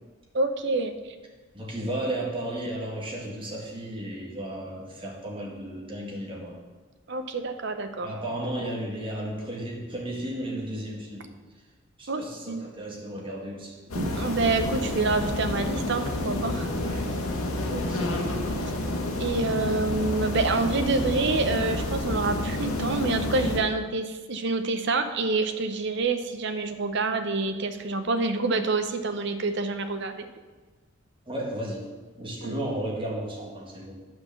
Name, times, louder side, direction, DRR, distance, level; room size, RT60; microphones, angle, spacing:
voice 1, 0.3-1.0 7.1-8.1 12.1-12.6 13.9-16.7 17.7-17.8 19.2-30.3 32.4-32.6, right 3 dB, 55° right, 8 dB, 0.8 m, -27 dB
voice 2, 1.5-6.6 8.0-11.3 12.0-13.8 16.8-17.1 17.6-18.3 31.3-34.0, right 1 dB, 25° right, -2 dB, 1.8 m, -34 dB
sound 1, 13.9-23.6, left 1 dB, 80° left, 1.5 m, -29 dB
9.8 x 5.8 x 6.9 m, 1.3 s
head